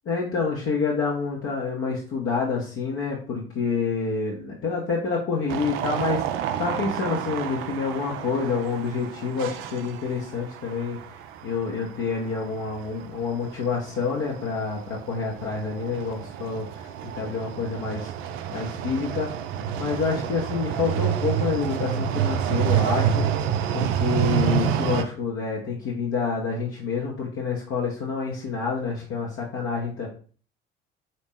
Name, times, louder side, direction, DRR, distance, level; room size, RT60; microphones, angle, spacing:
voice 1, 0.1-11.0 11.4-19.3 19.8-23.3 23.7-30.1, left 5 dB, 45° left, -3 dB, 0.9 m, -28 dB
sound 1, 5.5-25.0, right 9 dB, 45° right, 0.4 m, -29 dB
4.0 x 2.7 x 3.6 m, 0.41 s
figure-of-eight pair, 55°, 29 cm